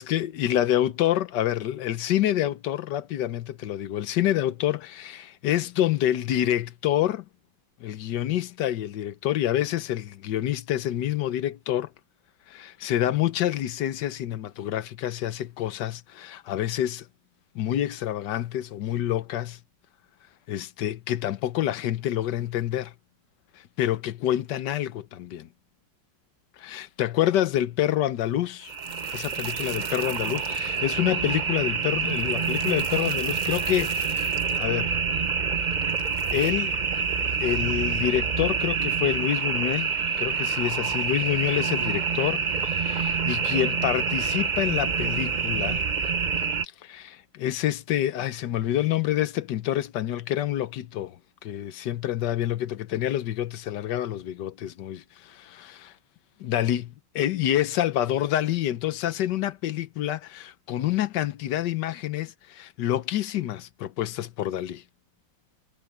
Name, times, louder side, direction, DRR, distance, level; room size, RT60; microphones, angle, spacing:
voice 1, 0.0-7.2 7.8-11.9 12.5-17.1 17.5-19.6 20.5-22.9 23.8-25.5 26.6-28.7 29.1-34.9 36.3-36.8 37.4-39.9 40.2-45.8 46.8-55.9 56.4-64.8, left 12 dB, 70° left, 1.4 m, -27 dB
sound 1, 28.6-46.6, right 6 dB, 45° right, 0.5 m, -27 dB
omnidirectional pair, 2.0 m